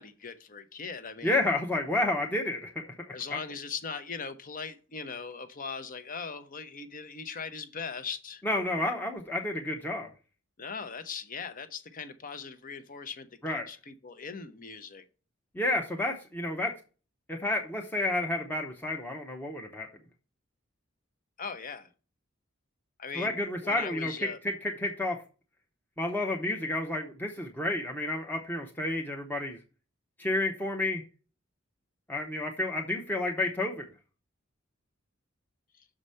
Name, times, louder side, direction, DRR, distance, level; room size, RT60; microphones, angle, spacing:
voice 1, 0.0-1.5 3.1-8.4 10.6-15.0 21.4-21.9 23.0-23.4 23.6-24.4 35.8-35.9, left 5 dB, 40° left, 0.8 m, -40 dB
voice 2, 1.2-2.8 3.3-3.4 8.4-10.1 13.4-13.7 15.5-16.7 17.3-19.9 23.2-25.2 26.0-29.6 30.2-31.0 32.1-33.9, left 2 dB, 10° left, 0.8 m, -30 dB
6.5 x 4.9 x 5.5 m
head